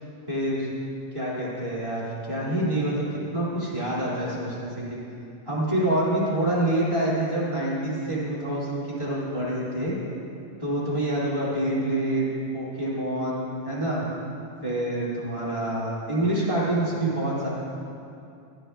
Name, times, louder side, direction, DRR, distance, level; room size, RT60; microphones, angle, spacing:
voice 1, 0.3-0.7 1.1-3.0 3.3-4.8 5.4-9.9 10.6-12.3 12.5-14.0 14.6-17.5, right 1 dB, 15° right, -8 dB, 1.5 m, -26 dB
15.5 x 11.0 x 2.2 m, 2.7 s
omnidirectional pair, 3.7 m